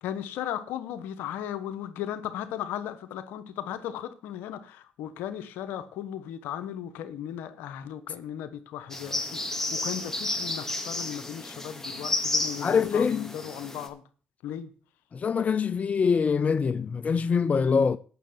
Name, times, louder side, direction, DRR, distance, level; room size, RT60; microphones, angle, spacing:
voice 1, 0.0-14.0 14.4-14.7, left 10 dB, 85° left, 1.1 m, -36 dB
sound 1, 8.9-13.9, left 2 dB, 15° left, 2.6 m, -32 dB
voice 2, 12.6-13.4 15.1-18.0, left 6 dB, 45° left, 0.6 m, -24 dB
9.2 x 6.5 x 7.9 m
supercardioid pair, 55°, 3 cm